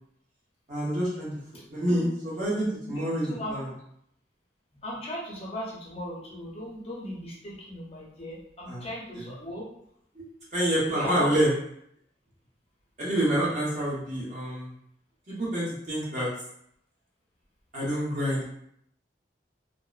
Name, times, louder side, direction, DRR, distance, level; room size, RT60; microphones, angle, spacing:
voice 1, 0.7-1.3 1.7-3.8 8.7-8.9 9.1-9.3 10.1-10.2 10.5-11.5 13.0-14.7 15.3-16.3 17.7-18.5, right 1 dB, 45° right, -6 dB, 0.9 m, -27 dB
voice 2, 2.9-3.6 4.7-9.7 10.9-11.4, left 1 dB, 35° left, -5 dB, 0.6 m, -37 dB
2.8 x 2.0 x 2.3 m, 0.72 s
head